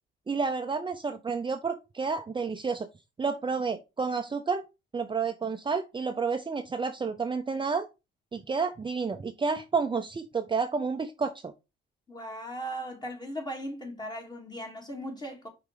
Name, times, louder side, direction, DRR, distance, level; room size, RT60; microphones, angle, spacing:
voice 1, 0.3-2.9 3.2-4.6 4.9-7.9 8.3-11.5, right 5 dB, 25° right, 0.7 m, -30 dB
voice 2, 12.1-15.5, equal, 20° left, 3.0 m, -38 dB
5.4 x 4.7 x 4.9 m
cardioid pair, 90°, 20 cm